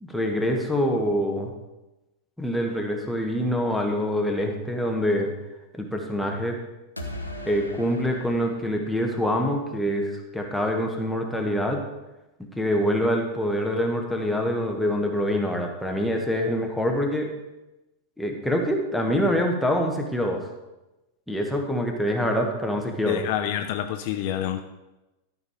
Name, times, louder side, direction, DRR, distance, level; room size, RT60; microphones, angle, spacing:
voice 1, 0.0-1.5 2.4-5.3 5.7-6.6 7.4-11.8 12.6-17.3 18.2-20.5 21.3-23.2, equal, ahead, 1 dB, 1.5 m, -25 dB
sound 1, 7.0-9.9, left 1 dB, 85° left, 1.1 m, -39 dB
voice 2, 23.1-24.6, left 11 dB, 45° left, 7 dB, 0.5 m, -27 dB
13.0 x 5.5 x 4.9 m, 1.0 s
figure-of-eight pair, 90°, 0 cm